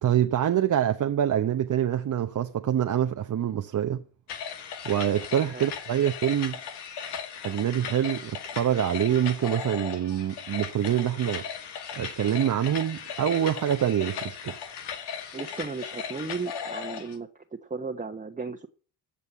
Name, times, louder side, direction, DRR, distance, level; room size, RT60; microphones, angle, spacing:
voice 1, 0.0-4.0 4.8-6.6 7.4-11.5 11.9-14.6, right 10 dB, 50° right, 0.9 m, -25 dB
sound 1, 4.3-17.2, left 7 dB, 85° left, 2.1 m, -37 dB
voice 2, 15.3-18.7, right 4 dB, 20° right, 1.1 m, -35 dB
15.5 x 5.3 x 8.7 m
supercardioid pair, 75°, 40 cm